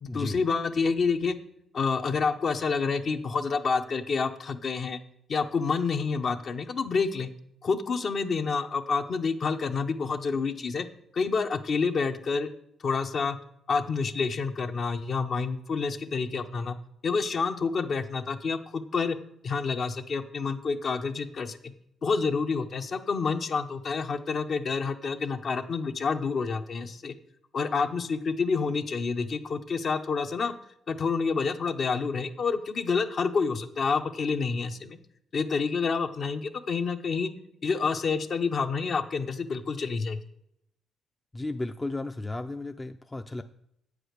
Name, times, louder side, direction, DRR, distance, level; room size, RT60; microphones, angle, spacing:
voice 1, 0.0-1.4 1.7-5.0 5.3-7.3 7.6-10.9 11.1-12.5 12.8-13.4 13.7-16.8 17.0-19.2 19.4-21.7 22.0-27.2 27.5-30.5 30.9-35.0 35.3-37.3 37.6-40.2, left 5 dB, 50° left, 8 dB, 0.7 m, -28 dB
voice 2, 41.3-43.4, left 2 dB, 15° left, 8 dB, 0.4 m, -34 dB
7.9 x 4.9 x 6.5 m, 0.75 s
cardioid pair, 90°, 0 cm